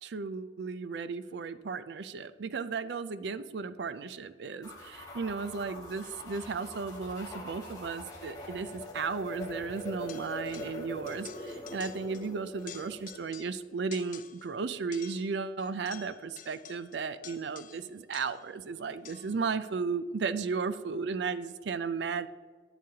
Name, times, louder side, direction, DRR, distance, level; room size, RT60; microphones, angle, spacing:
voice 1, 0.0-22.3, right 5 dB, 60° right, 13 dB, 0.4 m, -35 dB
sound 1, 4.6-13.2, left 1 dB, 20° left, 1.8 m, -43 dB
sound 2, 10.1-10.8 11.1-12.3 12.6-13.6 13.9-14.5 14.9-18.5 19.0-19.4, left 10 dB, 45° left, 0.4 m, -50 dB
11.0 x 8.1 x 2.8 m, 1.5 s
head